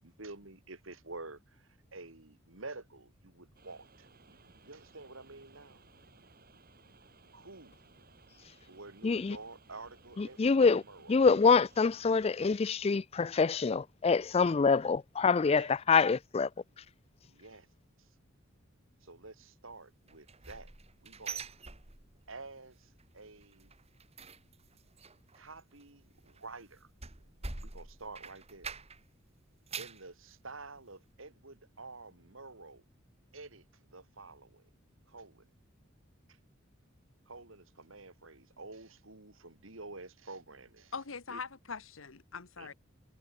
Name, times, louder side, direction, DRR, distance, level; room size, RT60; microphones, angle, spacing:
voice 1, 0.0-5.8 7.3-7.8 8.7-11.1 15.5-15.7 17.2-17.7 18.0-18.1 19.0-20.7 21.0-21.4 22.3-23.7 25.3-26.9 27.6-28.7 29.8-32.8 33.3-34.7 35.1-35.5 36.3-36.4 37.3-40.9 41.3-41.4 42.6-42.7, right 3 dB, 80° right, 3.7 m, -49 dB
sound 1, 3.5-12.6, right 3 dB, 45° right, 5.3 m, -61 dB
voice 2, 9.0-9.4 10.2-10.8 11.1-16.5, left 5 dB, 30° left, 0.4 m, -26 dB
sound 2, 20.1-22.4 22.7-23.1 23.3-29.1 29.5-30.1 30.6-30.7 31.1-31.2, right 5 dB, 30° right, 2.3 m, -45 dB
voice 3, 40.9-42.7, left 5 dB, 80° left, 1.3 m, -42 dB
head